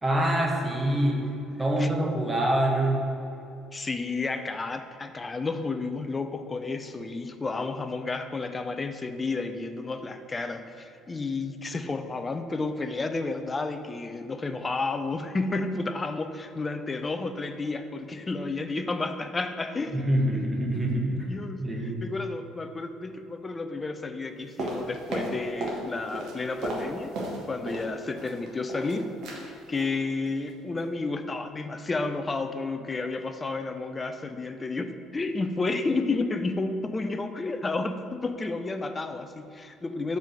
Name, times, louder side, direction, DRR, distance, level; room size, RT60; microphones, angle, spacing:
voice 1, 0.0-1.2 1.6-3.0 19.9-21.3 21.6-22.1, right 1 dB, 20° right, -1 dB, 1.6 m, -25 dB
voice 2, 1.5-1.9 3.7-20.0 20.3-20.5 21.3-27.2 27.5-40.2, left 3 dB, 25° left, 8 dB, 0.6 m, -31 dB
sound 1, 24.6-25.8 26.1-27.9 28.2-28.9 29.2-29.4 29.7-29.9 30.3-30.5 30.8-30.9, right 1 dB, 55° right, 1.5 m, -34 dB
5.4 x 5.1 x 6.2 m, 2.7 s
figure-of-eight pair, 55°, 0 cm